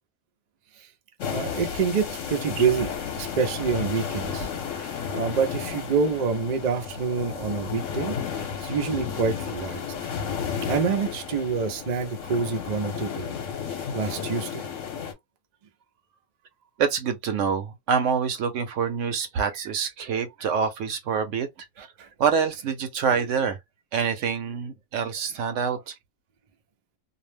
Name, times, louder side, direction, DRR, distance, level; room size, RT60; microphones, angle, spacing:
sound 1, 1.2-15.1, left 7 dB, 60° left, 1.1 m, -33 dB
voice 1, 1.3-2.9 3.2-4.5 4.8-9.8 10.7-13.3 13.9-14.6, right 5 dB, 90° right, 0.3 m, -27 dB
voice 2, 16.8-23.6 23.9-25.9, right 6 dB, 65° right, 0.9 m, -26 dB
2.6 x 2.1 x 3.2 m
omnidirectional pair, 1.5 m